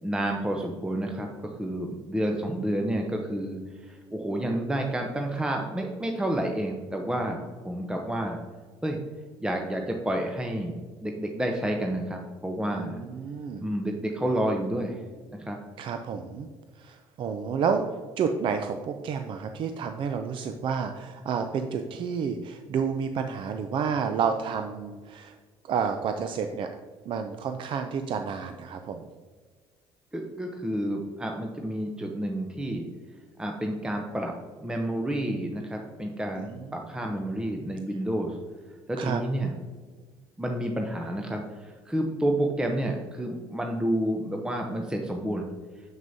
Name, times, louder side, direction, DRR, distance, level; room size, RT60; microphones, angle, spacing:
voice 1, 0.0-8.4 8.8-9.0 9.4-10.7 11.0-13.0 13.6-15.0 15.3-15.6 30.1-32.9 33.4-34.3 34.6-38.4 38.9-39.5 40.4-45.5, right 1 dB, 5° right, 2 dB, 0.7 m, -30 dB
voice 2, 12.7-13.6 15.8-16.5 16.8-17.8 18.2-25.3 25.6-26.7 27.1-29.0 36.4-36.5 39.0-39.2, right 6 dB, 55° right, 6 dB, 0.5 m, -30 dB
7.1 x 6.0 x 2.7 m, 1.5 s
supercardioid pair, 90°, 11 cm